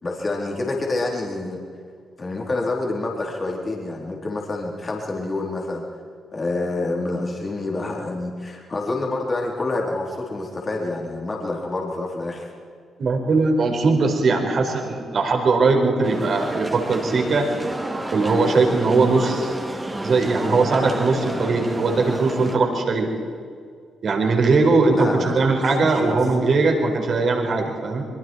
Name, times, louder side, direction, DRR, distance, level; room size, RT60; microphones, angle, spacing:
voice 1, 0.0-1.6 2.2-5.8 6.3-12.5 24.9-25.5 25.8-26.2, left 2 dB, 35° left, -1 dB, 4.2 m, -27 dB
voice 2, 13.0-17.5 18.1-19.6 20.0-23.1 24.0-28.0, right 3 dB, 55° right, 2 dB, 4.8 m, -20 dB
sound 1, 16.0-22.6, right 1 dB, 20° right, 3.1 m, -30 dB
25.0 x 23.5 x 4.7 m, 2.1 s
hypercardioid pair, 40°, 0 cm